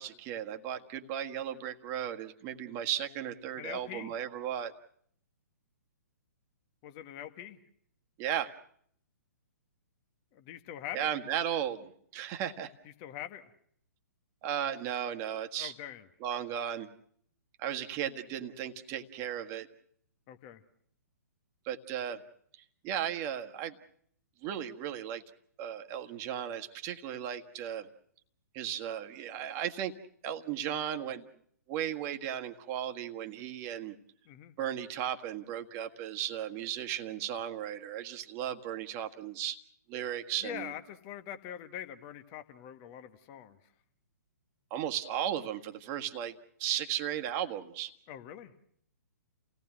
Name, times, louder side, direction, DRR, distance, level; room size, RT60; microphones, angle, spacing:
voice 1, 0.0-4.7 8.2-8.5 10.9-12.7 14.4-15.7 16.2-16.9 17.6-19.7 21.7-22.2 22.8-23.8 24.4-25.2 25.6-27.9 28.5-29.9 30.2-31.3 31.7-34.0 34.6-39.6 39.9-40.7 44.7-47.9, right 10 dB, 30° right, 6 dB, 1.6 m, -35 dB
voice 2, 3.6-4.2 6.8-7.6 10.3-11.1 13.0-13.5 15.6-16.0 20.3-20.6 34.3-34.5 40.4-43.6 48.1-48.5, left 11 dB, 35° left, 9 dB, 1.7 m, -43 dB
30.0 x 18.0 x 6.2 m, 0.65 s
figure-of-eight pair, 125°, 9 cm